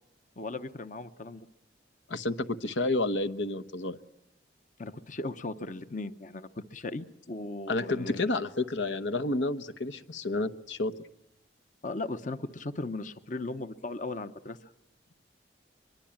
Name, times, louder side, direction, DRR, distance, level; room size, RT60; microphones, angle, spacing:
voice 1, 0.4-1.5 4.8-8.2 11.8-14.7, left 2 dB, 45° left, 11 dB, 0.9 m, -37 dB
voice 2, 2.1-4.0 7.7-10.9, left 2 dB, 80° left, 10 dB, 1.1 m, -30 dB
23.0 x 22.5 x 8.8 m, 0.81 s
head